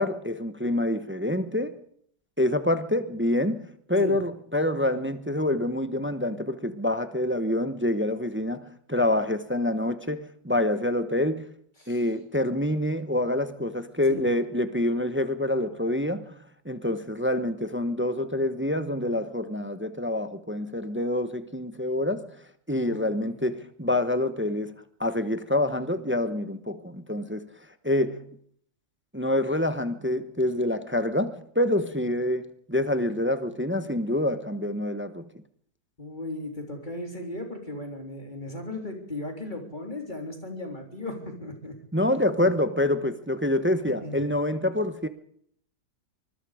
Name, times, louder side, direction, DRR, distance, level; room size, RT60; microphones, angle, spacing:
voice 1, 0.0-1.8 2.4-11.5 11.9-16.3 16.6-22.3 22.7-27.5 27.8-28.2 29.1-35.3 41.9-45.1, left 1 dB, 10° right, 0.7 m, -26 dB
voice 2, 22.8-23.4 36.0-41.8 42.4-42.5 43.9-44.2, left 2 dB, 25° left, 3.6 m, -37 dB
24.5 x 21.0 x 5.0 m
omnidirectional pair, 1.8 m